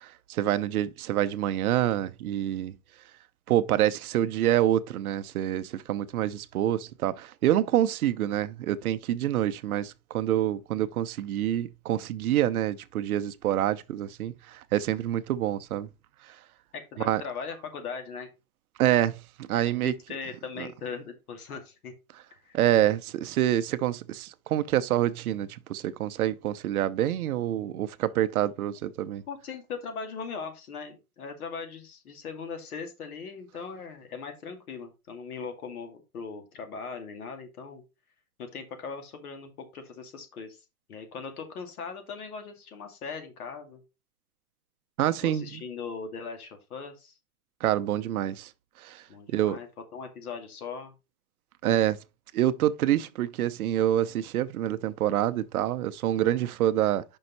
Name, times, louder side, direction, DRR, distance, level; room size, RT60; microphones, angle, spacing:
voice 1, 0.0-2.7 3.5-15.9 16.3-16.4 17.0-17.2 18.8-19.9 20.6-20.7 22.5-29.2 45.0-45.6 47.6-48.5 48.8-49.0 49.3-49.6 51.6-52.0 52.3-57.0, right 12 dB, 70° right, 0.7 m, -27 dB
voice 2, 16.7-18.3 19.5-21.9 22.5-22.6 29.3-37.8 38.4-40.6 40.9-43.8 45.2-47.1 49.1-49.7 49.9-50.9, left 5 dB, 75° left, 2.3 m, -39 dB
5.6 x 5.4 x 4.0 m
supercardioid pair, 170°, 45 cm